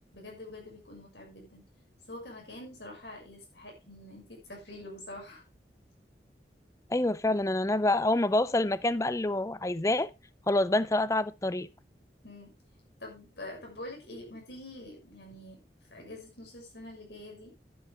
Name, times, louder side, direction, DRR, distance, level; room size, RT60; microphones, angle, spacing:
voice 1, 0.1-1.6 2.1-5.4 12.2-12.5 13.0-15.6 15.9-17.5, left 1 dB, 80° left, 6.4 m, -45 dB
voice 2, 6.9-10.1 10.5-11.7, left 2 dB, 20° left, 0.5 m, -27 dB
11.0 x 10.0 x 3.5 m
head